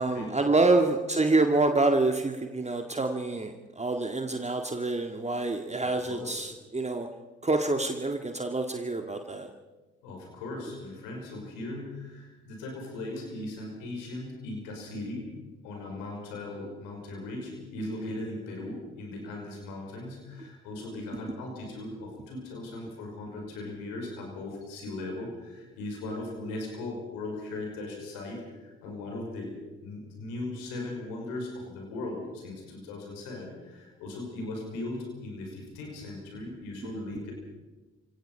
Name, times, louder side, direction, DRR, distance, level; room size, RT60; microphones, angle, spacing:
voice 1, 0.0-7.1 7.4-9.5, right 2 dB, 20° right, 4 dB, 2.0 m, -27 dB
voice 2, 10.0-15.3 15.6-29.5 29.8-37.3, left 2 dB, 80° left, 1 dB, 5.5 m, -38 dB
28.0 x 17.5 x 5.6 m, 1.2 s
hypercardioid pair, 45°, 32 cm